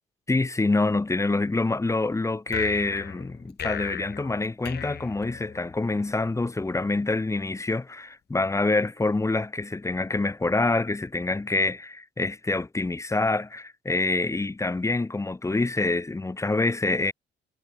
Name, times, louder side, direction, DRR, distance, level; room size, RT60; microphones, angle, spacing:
voice 1, 0.3-17.1, left 2 dB, 15° left, 0.8 m, -26 dB
sound 1, 2.5-5.9, left 10 dB, 55° left, 0.9 m, -36 dB
cardioid pair, 90°, 20 cm